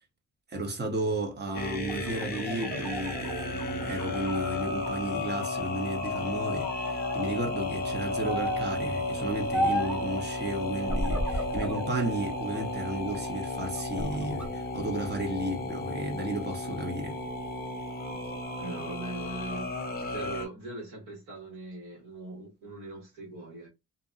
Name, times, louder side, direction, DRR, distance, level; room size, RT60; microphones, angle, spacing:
voice 1, 0.5-17.2, right 2 dB, 35° right, 0.8 m, -33 dB
sound 1, 1.6-20.5, left 2 dB, 30° left, 0.7 m, -34 dB
sound 2, 1.7-4.9 5.3-6.2 6.6-7.2 8.2-8.8 9.5-10.1 10.8-11.9 12.4-13.3 13.8-14.5, equal, 5° right, 1.0 m, -34 dB
voice 2, 18.6-19.8 20.1-23.7, right 2 dB, 80° right, 1.5 m, -40 dB
2.7 x 2.2 x 2.5 m
cardioid pair, 90°, 30 cm